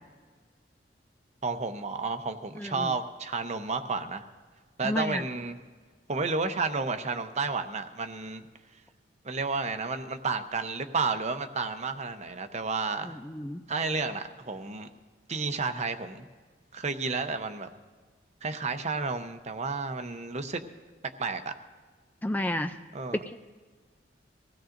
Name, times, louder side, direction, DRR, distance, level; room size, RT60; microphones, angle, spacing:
voice 1, 1.4-4.2 4.8-5.6 6.1-8.4 9.2-13.2 13.7-14.9 15.3-16.2 16.7-17.7 18.4-20.6 21.2-21.5 22.9-23.2, right 4 dB, 40° right, 8 dB, 0.8 m, -31 dB
voice 2, 2.6-2.9 4.8-5.2 13.1-13.6 22.2-22.7 23.3-23.4, left 1 dB, 10° left, 8 dB, 0.4 m, -31 dB
23.5 x 17.0 x 2.6 m, 1.5 s
head